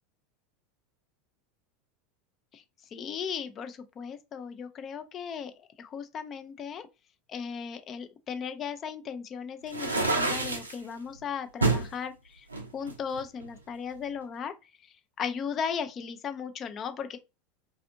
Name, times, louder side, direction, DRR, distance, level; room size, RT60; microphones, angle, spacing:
voice 1, 2.9-6.9 7.3-12.5 12.7-14.5 14.8-17.2, left 7 dB, 35° left, 0.4 m, -36 dB
sound 1, 9.7-10.8 11.6-11.9 12.5-13.6, right 3 dB, 90° right, 0.5 m, -28 dB
2.5 x 2.4 x 2.5 m
figure-of-eight pair, 80°, 0 cm